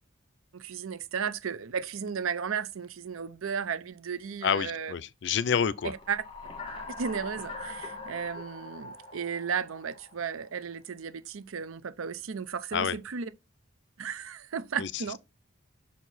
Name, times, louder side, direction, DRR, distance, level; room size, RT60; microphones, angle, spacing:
voice 1, 0.5-4.9 5.8-6.2 7.0-13.3 14.0-15.2, right 6 dB, 90° right, 0.6 m, -34 dB
voice 2, 4.4-5.9 12.7-13.0 14.8-14.9, left 7 dB, 55° left, 0.4 m, -28 dB
sound 1, 5.8-10.5, left 3 dB, 25° left, 1.6 m, -42 dB
5.7 x 4.6 x 4.0 m
head